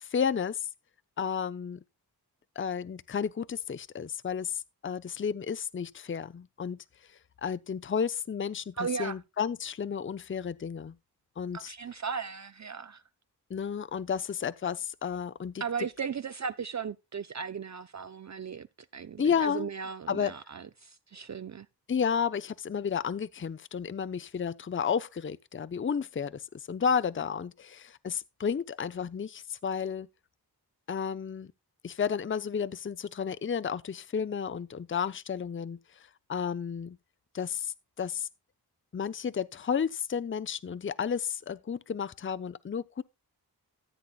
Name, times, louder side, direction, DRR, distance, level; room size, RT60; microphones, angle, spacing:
voice 1, 0.0-0.7 1.2-1.8 2.6-6.8 7.4-11.0 11.4-11.7 13.5-15.6 19.2-19.7 20.1-20.3 21.9-30.1 30.9-31.5 31.8-35.8 36.3-37.0 37.3-38.3 38.9-43.0, left 7 dB, 30° left, 0.5 m, -32 dB
voice 2, 8.8-9.2 11.5-13.0 15.6-18.7 18.9-21.7, right 6 dB, 45° right, 0.5 m, -36 dB
14.5 x 8.3 x 2.3 m
cardioid pair, 50°, 39 cm